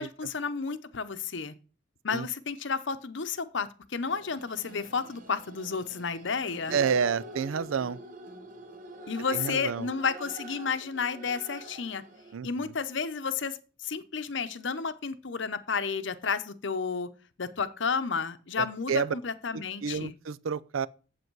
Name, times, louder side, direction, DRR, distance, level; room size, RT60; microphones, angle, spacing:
voice 1, 0.0-1.5 2.0-6.8 9.1-12.0 12.4-17.1 17.4-20.1, left 5 dB, 65° left, 0.7 m, -32 dB
sound 1, 4.0-12.3, right 2 dB, 40° right, 0.9 m, -46 dB
voice 2, 6.7-8.0 9.3-9.9 12.3-12.7 18.6-19.1 19.5-20.9, right 6 dB, 80° right, 0.4 m, -30 dB
8.0 x 7.8 x 4.6 m
head